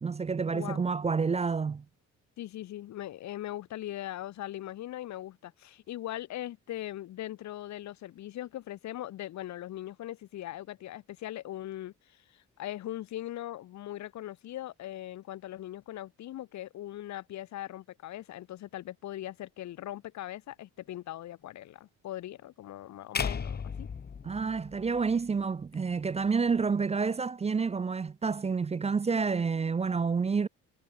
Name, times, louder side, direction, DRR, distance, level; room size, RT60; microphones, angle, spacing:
voice 1, 0.0-1.8 24.2-30.5, right 5 dB, 20° right, 0.4 m, -29 dB
voice 2, 0.5-0.8 2.4-23.9, left 13 dB, 55° left, 0.7 m, -40 dB
sound 1, 23.1-25.4, left 6 dB, 30° left, 0.9 m, -35 dB
supercardioid pair, 75°, 34 cm